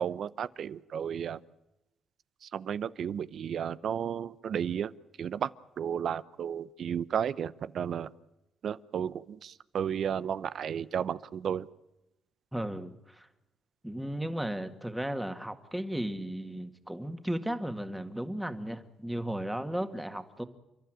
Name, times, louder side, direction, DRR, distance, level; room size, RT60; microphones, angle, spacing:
voice 1, 0.0-1.4 2.4-4.9 5.2-5.5 5.8-8.1 8.6-11.7, right 8 dB, 60° right, 17 dB, 0.8 m, -33 dB
voice 2, 12.5-13.3 13.8-20.4, right 1 dB, 5° right, 8 dB, 2.1 m, -35 dB
30.0 x 12.0 x 9.2 m, 0.94 s
cardioid pair, 80°, 0 cm